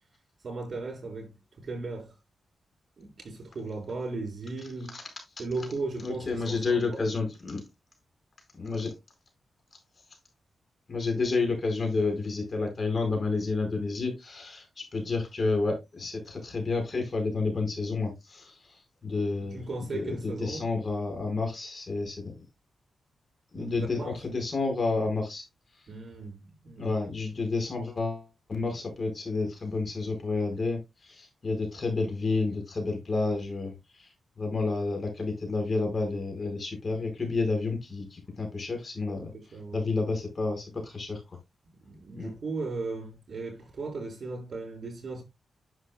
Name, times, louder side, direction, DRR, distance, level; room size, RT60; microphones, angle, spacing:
voice 1, 0.4-2.1 3.0-5.0 5.4-7.0 11.1-11.2 19.5-20.7 23.5-24.2 25.9-26.9 39.1-39.8 41.8-45.2, right 3 dB, 55° right, 6.1 m, -37 dB
voice 2, 6.0-7.6 8.6-8.9 10.9-19.6 19.9-22.3 23.5-25.4 26.8-34.1 34.4-41.4 42.1-42.3, left 3 dB, 45° left, 4.7 m, -30 dB
10.5 x 7.4 x 2.2 m
cardioid pair, 65°, 0 cm